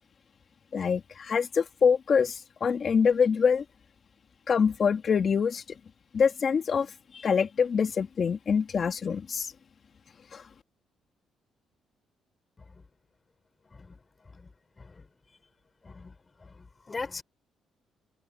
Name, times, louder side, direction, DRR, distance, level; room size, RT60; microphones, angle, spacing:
voice 1, 0.7-3.6 4.5-5.6 6.1-9.5 10.3-10.4, left 6 dB, 40° left, 2.9 m, -25 dB
voice 2, 15.8-16.1 16.6-17.2, left 4 dB, 25° left, 5.3 m, -40 dB
cardioid pair, 125°, 0 cm